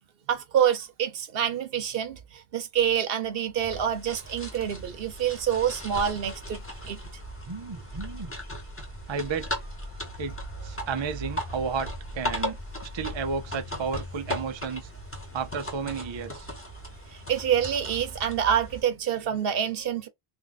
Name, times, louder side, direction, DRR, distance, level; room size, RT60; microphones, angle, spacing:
voice 1, 0.3-2.2 2.5-7.0 17.3-20.1, right 9 dB, 70° right, 0.9 m, -27 dB
sound 1, 3.6-18.8, equal, 15° left, 1.1 m, -37 dB
voice 2, 7.5-8.3 9.1-9.6 10.2-10.3 10.6-11.9 12.1-12.6 12.8-14.9 15.3-16.5, right 5 dB, 40° right, 0.4 m, -32 dB
3.4 x 2.5 x 3.9 m
omnidirectional pair, 1.0 m